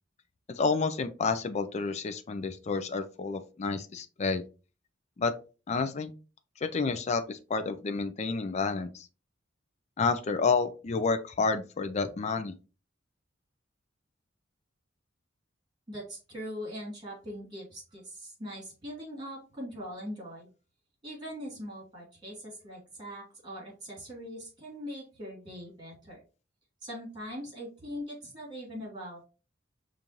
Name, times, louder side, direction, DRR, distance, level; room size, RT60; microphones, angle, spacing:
voice 1, 0.6-4.4 5.2-5.3 5.7-6.1 6.6-9.1 10.0-12.5, left 4 dB, 35° left, 9 dB, 0.4 m, -29 dB
voice 2, 15.9-20.5 21.0-26.2 26.8-29.3, equal, 25° right, -3 dB, 2.4 m, -41 dB
5.3 x 2.5 x 2.9 m, 0.33 s
head